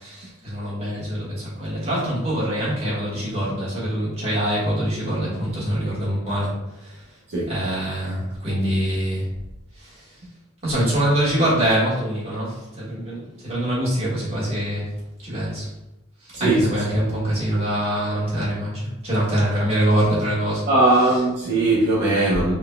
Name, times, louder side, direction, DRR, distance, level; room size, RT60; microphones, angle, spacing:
voice 1, 0.0-7.1 7.5-9.3 9.7-10.2 10.6-14.9 15.2-15.7 16.2-20.7, right 1 dB, 30° right, -8 dB, 1.5 m, -24 dB
voice 2, 16.3-16.7 20.7-22.5, right 2 dB, 50° right, -6 dB, 0.7 m, -19 dB
3.9 x 3.2 x 2.2 m, 0.95 s
head